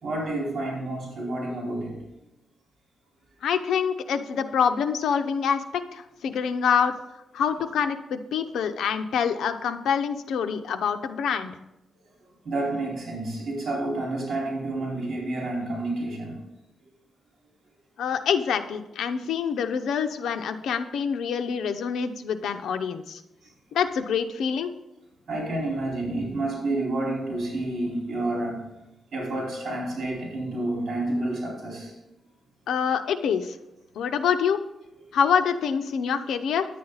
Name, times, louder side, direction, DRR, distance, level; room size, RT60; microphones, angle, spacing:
voice 1, 0.0-2.0 12.4-16.4 25.3-28.7 29.1-31.9, right 2 dB, 55° right, 4.2 m, -29 dB
voice 2, 3.4-6.9 7.3-11.5 18.0-23.2 23.7-24.7 32.7-33.6 34.0-34.6 35.1-36.7, left 7 dB, 90° left, 0.7 m, -26 dB
10.5 x 8.5 x 4.0 m
cardioid pair, 120°, 0 cm